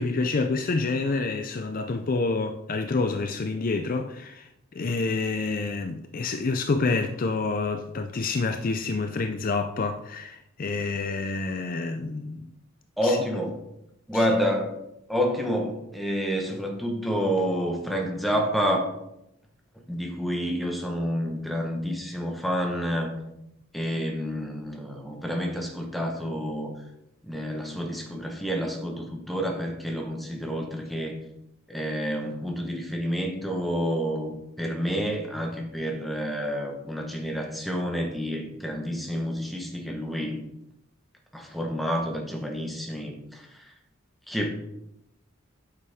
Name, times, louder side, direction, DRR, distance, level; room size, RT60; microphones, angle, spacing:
voice 1, 0.0-12.5 13.0-13.2 14.1-14.3, left 3 dB, 40° left, 0.4 m, -28 dB
voice 2, 13.0-13.5 14.1-14.8 15.1-18.9 19.9-23.1 23.7-26.7 27.2-31.2 31.7-40.4 41.3-43.7 44.3-44.5, equal, ahead, 1.2 m, -29 dB
8.7 x 6.7 x 3.6 m
head